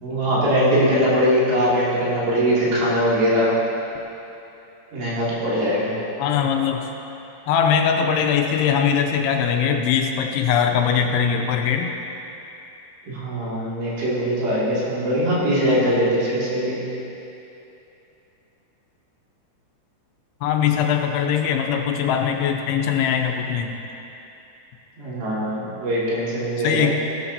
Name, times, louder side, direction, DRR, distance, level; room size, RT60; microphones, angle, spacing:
voice 1, 0.0-3.5 4.9-5.9 13.1-16.8 25.0-26.9, equal, 90° right, -8 dB, 4.9 m, -21 dB
voice 2, 6.2-6.9 7.5-11.9 20.4-23.7 26.6-26.9, left 7 dB, 85° left, 3 dB, 2.7 m, -21 dB
15.5 x 12.0 x 2.9 m, 2.9 s
omnidirectional pair, 4.8 m